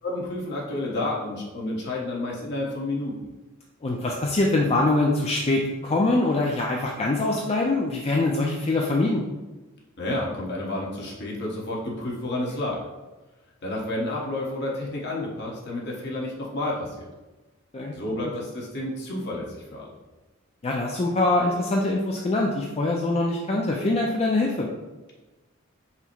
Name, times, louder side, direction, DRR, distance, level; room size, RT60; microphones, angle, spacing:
voice 1, 0.0-3.3 10.0-12.8 13.6-17.1 17.9-19.9, left 1 dB, 55° left, -3 dB, 1.1 m, -30 dB
voice 2, 3.8-9.2 17.7-17.9 20.6-24.7, left 2 dB, 30° left, -1 dB, 0.4 m, -23 dB
5.6 x 2.1 x 4.5 m, 1.2 s
head